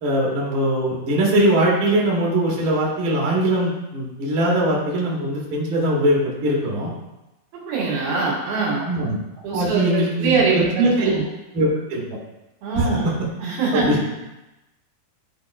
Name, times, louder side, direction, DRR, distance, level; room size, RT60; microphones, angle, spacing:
voice 1, 0.0-6.9 8.8-9.2 9.5-11.1 11.5-12.0 12.7-13.1 13.7-14.0, right 1 dB, 50° right, -4 dB, 1.6 m, -21 dB
voice 2, 7.5-8.9 9.4-11.3 12.6-13.1 13.4-14.0, right 4 dB, 80° right, -4 dB, 3.6 m, -23 dB
12.0 x 4.1 x 2.5 m, 0.99 s
omnidirectional pair, 4.4 m